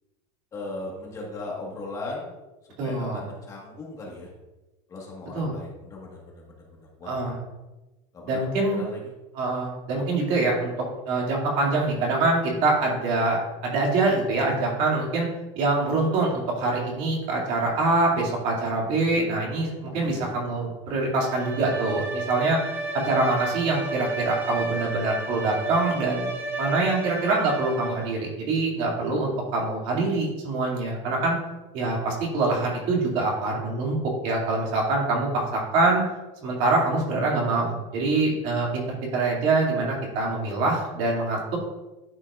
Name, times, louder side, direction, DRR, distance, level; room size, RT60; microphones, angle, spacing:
voice 1, 0.5-2.4 2.8-4.3 4.9-6.2 6.5-7.2 8.1-8.4 8.7-9.0 19.9-20.2, left 2 dB, 20° left, -2 dB, 1.5 m, -37 dB
voice 2, 2.8-3.2 5.3-5.5 7.0-7.4 8.3-8.8 9.3-10.7 11.1-15.3 15.5-22.6 22.9-26.3 26.6-31.4 31.7-34.0 34.2-36.0 36.4-38.8 39.1-41.6, right 2 dB, 45° right, -2 dB, 2.4 m, -24 dB
Bowed string instrument, 21.2-28.3, right 3 dB, 15° right, 0.6 m, -32 dB
11.5 x 5.7 x 2.4 m, 1.1 s
supercardioid pair, 170°, 16 cm